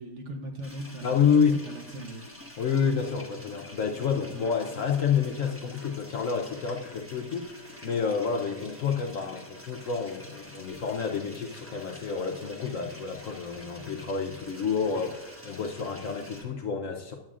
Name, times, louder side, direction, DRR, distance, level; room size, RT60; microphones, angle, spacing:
voice 1, 0.0-2.2, right 1 dB, 55° right, 3 dB, 0.9 m, -39 dB
sound 1, 0.6-16.4, equal, 10° right, 1.2 m, -48 dB
voice 2, 1.0-1.6 2.6-17.2, left 6 dB, 60° left, 2 dB, 0.9 m, -29 dB
10.5 x 8.8 x 2.4 m, 1.0 s
omnidirectional pair, 1.8 m